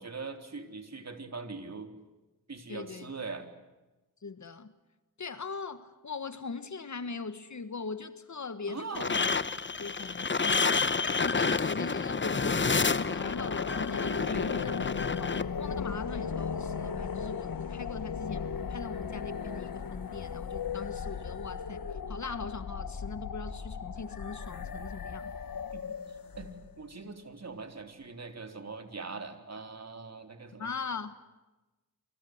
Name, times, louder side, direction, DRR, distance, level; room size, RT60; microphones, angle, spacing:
voice 1, 0.0-1.9 2.5-3.5 8.7-9.1 14.2-14.7 25.7-26.0 26.4-30.7, right 4 dB, 50° right, 6 dB, 3.9 m, -42 dB
voice 2, 2.7-3.1 4.2-4.7 5.2-9.3 9.8-14.8 15.6-25.3 30.6-31.1, left 4 dB, 55° left, 11 dB, 1.6 m, -40 dB
sound 1, 8.9-15.4, left 4 dB, 35° left, 1.0 m, -29 dB
sound 2, 12.8-26.9, left 6 dB, 85° left, 1.6 m, -37 dB
28.5 x 25.0 x 8.1 m, 1.1 s
wide cardioid pair, 90°, 34 cm